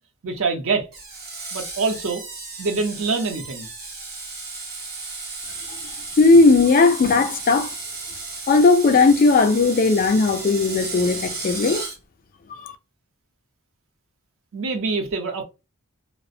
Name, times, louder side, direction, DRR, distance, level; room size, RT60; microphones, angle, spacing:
voice 1, 0.2-0.9 1.5-2.2 2.6-3.7 14.5-15.4, right 4 dB, 65° right, 0.5 m, -25 dB
Screech, 0.9-12.0, right 3 dB, 45° right, 0.9 m, -34 dB
voice 2, 5.7-7.7 8.5-11.8 12.6-12.7, left 3 dB, 40° left, 0.3 m, -17 dB
2.4 x 2.0 x 2.6 m
head